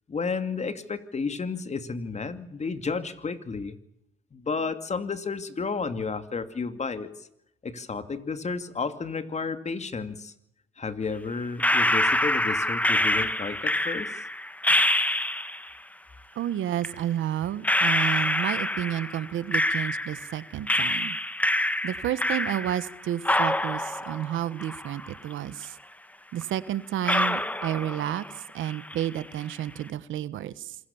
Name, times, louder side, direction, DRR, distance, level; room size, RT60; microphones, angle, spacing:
voice 1, 0.1-3.8 4.3-7.3 7.6-10.3 10.8-14.1, left 4 dB, 35° left, 10 dB, 2.5 m, -32 dB
sound 1, 11.6-15.7 16.8-16.9 17.6-20.3 20.7-22.9 23.2-25.3 25.6-25.7 26.4-26.5 27.0-28.4 28.6-29.2, left 1 dB, 5° left, 1.6 m, -26 dB
voice 2, 16.4-21.2 21.8-25.8 26.3-28.2 28.5-30.7, right 11 dB, 80° right, 16 dB, 1.3 m, -31 dB
27.0 x 21.0 x 7.2 m, 0.79 s
cardioid pair, 90°, 20 cm